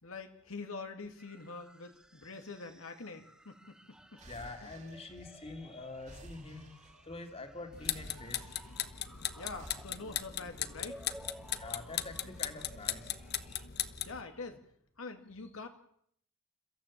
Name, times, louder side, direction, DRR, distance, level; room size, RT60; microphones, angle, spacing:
voice 1, 0.0-4.2 4.6-4.7 9.3-11.0 14.0-14.6 15.0-15.7, left 3 dB, 85° left, 5 dB, 2.2 m, -45 dB
sound 1, 1.2-13.7, equal, 5° right, 0.9 m, -56 dB
sound 2, 4.2-5.6 5.9-7.3 7.8-9.0 9.5-9.8, right 1 dB, 35° right, 2.7 m, -54 dB
voice 2, 4.3-8.4 11.6-13.2, left 2 dB, 30° left, 5 dB, 2.7 m, -45 dB
sound 3, 7.7-14.2, left 11 dB, 50° left, 1.0 m, -38 dB
29.5 x 14.5 x 7.4 m, 0.67 s
head